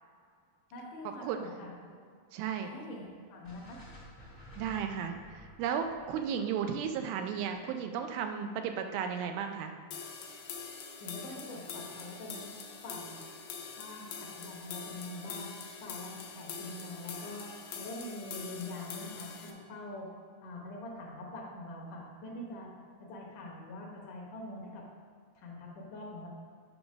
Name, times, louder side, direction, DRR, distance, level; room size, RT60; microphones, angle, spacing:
voice 1, 0.7-2.0 2.6-3.8 11.0-12.5 12.8-13.2 13.8-15.6 15.8-20.1 20.4-22.7 23.0-24.9 25.4-26.3, left 1 dB, 65° left, -2 dB, 2.1 m, -44 dB
voice 2, 2.3-2.7 4.6-9.7, right 7 dB, 80° right, 6 dB, 2.2 m, -34 dB
sound 1, 3.4-7.6, left 1 dB, 50° left, 0.5 m, -53 dB
sound 2, 9.9-19.5, left 6 dB, 90° left, 1.7 m, -44 dB
8.6 x 3.9 x 6.0 m, 2.1 s
omnidirectional pair, 4.9 m